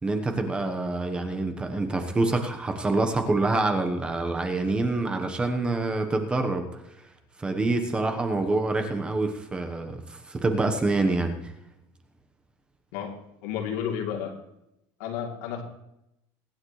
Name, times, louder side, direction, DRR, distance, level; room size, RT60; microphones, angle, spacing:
voice 1, 0.0-6.6 7.4-11.3, right 2 dB, 10° right, 6 dB, 1.1 m, -26 dB
voice 2, 13.4-14.3 15.0-15.6, left 8 dB, 85° left, 1 dB, 3.0 m, -31 dB
23.5 x 9.6 x 3.2 m, 0.85 s
cardioid pair, 180°, 9 cm